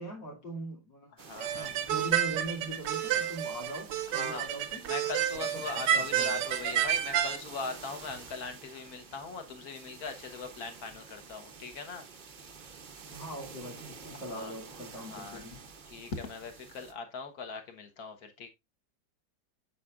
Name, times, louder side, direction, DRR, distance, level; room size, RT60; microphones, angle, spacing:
voice 1, 0.0-4.8 5.3-6.4 13.1-15.6, right 1 dB, 80° left, 3.3 m, -41 dB
voice 2, 1.2-1.7 4.1-4.4 4.8-12.1 14.1-14.5 15.0-15.5 15.9-18.5, left 4 dB, 60° left, 1.6 m, -40 dB
sound 1, 1.2-16.9, right 5 dB, 50° right, 0.6 m, -50 dB
sound 2, 1.4-7.4, right 10 dB, 85° right, 1.3 m, -30 dB
8.4 x 6.8 x 2.4 m
omnidirectional pair, 1.9 m